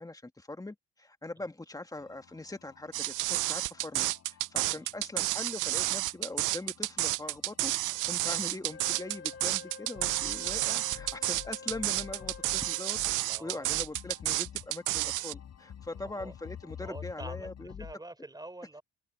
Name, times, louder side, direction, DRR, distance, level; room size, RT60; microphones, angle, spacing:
voice 1, 0.0-17.9, left 2 dB, 10° left, 2.1 m, -42 dB
sound 1, 2.0-17.9, left 9 dB, 60° left, 5.2 m, -50 dB
sound 2, 2.9-15.3, right 19 dB, 85° right, 0.5 m, -31 dB
voice 2, 4.6-5.0 13.2-13.7 15.9-16.3 16.8-17.5 17.8-18.8, right 2 dB, 15° right, 3.7 m, -46 dB
Wind instrument woodwind instrument, 8.7-13.1, left 4 dB, 40° left, 1.2 m, -48 dB
cardioid pair, 90°, 30 cm